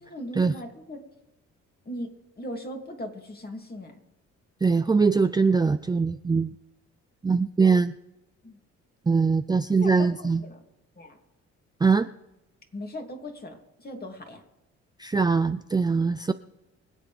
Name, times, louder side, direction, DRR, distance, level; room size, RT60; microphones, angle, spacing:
voice 1, 0.0-1.0 1.9-2.1 2.4-4.0 8.4-8.6 9.8-10.6 11.0-11.2 12.7-14.4, left 1 dB, 30° left, 3 dB, 2.5 m, -38 dB
voice 2, 4.6-6.6 7.2-8.0 9.1-10.4 11.8-12.1 15.0-16.3, right 4 dB, 15° right, 10 dB, 0.4 m, -22 dB
25.0 x 8.3 x 3.4 m, 0.98 s
cardioid pair, 90°, 30 cm